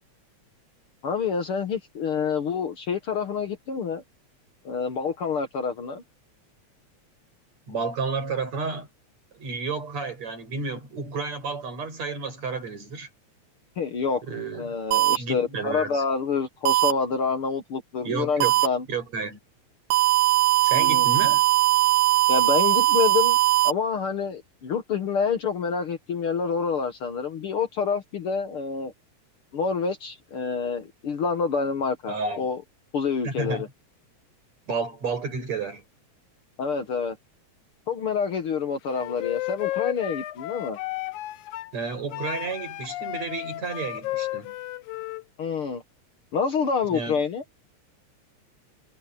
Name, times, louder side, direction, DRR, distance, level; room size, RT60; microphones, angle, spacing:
voice 1, 1.0-4.0 4.7-6.0 13.8-14.2 14.5-18.9 20.7-21.1 22.3-23.4 23.6-28.9 29.5-32.6 32.9-33.7 36.6-37.2 37.9-40.8 45.4-45.8 46.3-47.4, left 5 dB, 55° left, 2.0 m, -27 dB
voice 2, 7.7-8.9 9.3-13.1 14.2-14.7 15.0-16.0 18.0-18.5 18.9-19.4 20.6-21.4 32.1-32.5 33.2-33.7 34.7-35.8 41.7-44.5 46.9-47.2, right 4 dB, 65° right, 7.6 m, -31 dB
sound 1, 14.9-15.2 16.7-16.9 18.4-18.7 19.9-23.7, right 15 dB, 80° right, 2.5 m, -20 dB
Wind instrument woodwind instrument, 38.9-41.7 42.1-45.2, left 16 dB, 85° left, 2.2 m, -33 dB
omnidirectional pair, 3.3 m